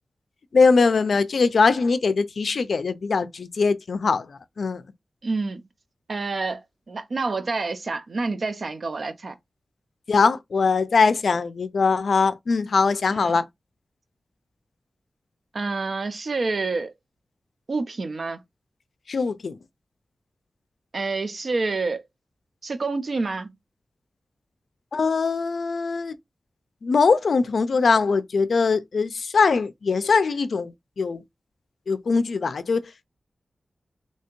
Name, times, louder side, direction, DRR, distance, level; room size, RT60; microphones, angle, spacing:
voice 1, 0.5-4.8 10.1-13.4 19.1-19.6 24.9-26.2 26.8-31.2 31.9-33.1, left 4 dB, 75° left, 0.3 m, -21 dB
voice 2, 5.2-5.6 6.1-9.4 13.2-13.4 15.5-16.9 17.7-18.4 20.9-22.0 22.6-23.5, right 3 dB, 55° right, 0.5 m, -28 dB
3.3 x 2.8 x 3.0 m
wide cardioid pair, 110°, 0 cm